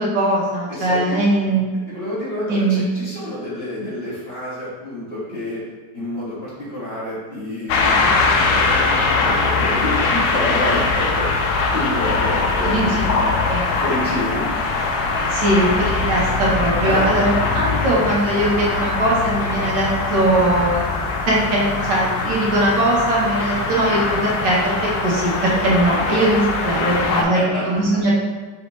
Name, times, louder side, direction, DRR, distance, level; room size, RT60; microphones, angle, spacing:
voice 1, 0.0-1.6 2.5-2.8 12.6-13.0 13.4-13.6 15.3-20.9 21.3-28.1, right 1 dB, 70° right, -5 dB, 1.6 m, -20 dB
voice 2, 0.7-1.2 1.9-5.6 5.9-13.4 13.7-14.5 16.8-17.3 26.1-26.2 26.7-27.6, left 1 dB, 35° left, -10 dB, 1.7 m, -28 dB
sound 1, 7.7-27.2, left 3 dB, 70° left, 1.0 m, -21 dB
4.3 x 3.5 x 3.0 m, 1.3 s
omnidirectional pair, 2.0 m